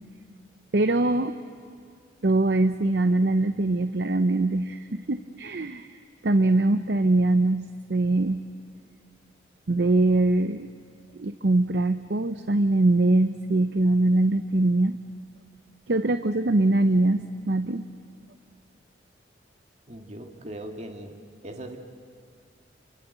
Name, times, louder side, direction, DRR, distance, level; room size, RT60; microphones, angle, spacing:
voice 1, 0.7-1.4 2.2-5.9 6.2-8.5 9.7-10.7 11.1-15.0 15.9-17.8, right 2 dB, 65° right, 10 dB, 0.7 m, -22 dB
voice 2, 19.9-21.2 21.4-21.8, right 1 dB, 35° right, 3 dB, 1.9 m, -39 dB
28.0 x 25.0 x 8.1 m, 2.1 s
head